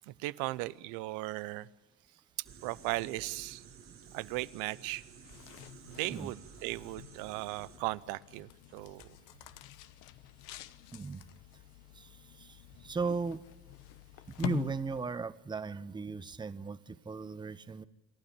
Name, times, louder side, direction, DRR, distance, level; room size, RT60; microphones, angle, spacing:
voice 1, 0.2-1.7 2.6-3.6 4.1-5.0 5.9-9.0, right 19 dB, 80° right, 19 dB, 0.8 m, -37 dB
sound 1, 2.4-7.8, right 7 dB, 40° right, 1.9 m, -53 dB
sound 2, 5.0-15.4, left 15 dB, 75° left, 1.0 m, -47 dB
voice 2, 10.9-11.3 12.0-12.1 12.4-12.6 12.8-13.4 14.4-17.8, right 4 dB, 15° right, 14 dB, 0.8 m, -36 dB
28.0 x 12.0 x 10.0 m, 1.0 s
supercardioid pair, 100°, 32 cm